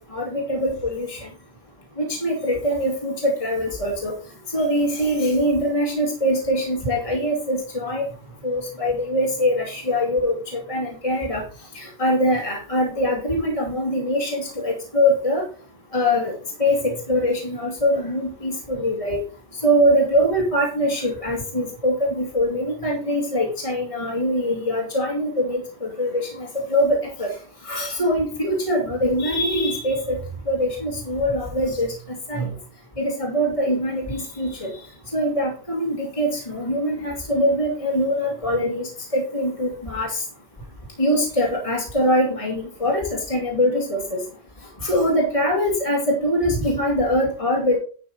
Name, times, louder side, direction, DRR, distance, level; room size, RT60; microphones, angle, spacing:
voice 1, 0.1-1.3 2.0-4.1 4.5-8.1 8.4-11.4 11.7-15.4 15.9-16.3 16.6-19.2 19.6-27.3 27.6-30.2 30.5-31.9 32.3-32.5 33.0-34.7 35.1-40.2 41.0-44.2 44.8-47.8, equal, 30° left, -1 dB, 2.5 m, -23 dB
10.5 x 6.0 x 5.1 m, 0.40 s
omnidirectional pair, 1.2 m